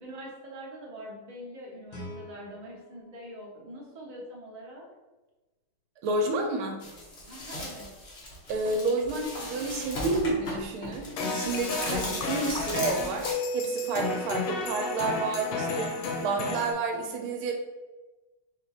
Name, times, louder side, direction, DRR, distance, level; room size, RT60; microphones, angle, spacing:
voice 1, 0.0-4.9 7.2-7.9, equal, 55° right, -4 dB, 0.4 m, -44 dB
Guitar, 1.9-4.7, left 1 dB, 65° left, 1.7 m, -47 dB
voice 2, 6.0-6.8 8.5-17.5, right 3 dB, 75° right, 3 dB, 1.5 m, -30 dB
sound 1, 6.8-13.3, left 1 dB, 40° left, 1.0 m, -38 dB
sound 2, 11.2-16.7, left 3 dB, 85° left, 1.6 m, -31 dB
4.3 x 2.6 x 4.1 m, 1.1 s
omnidirectional pair, 2.4 m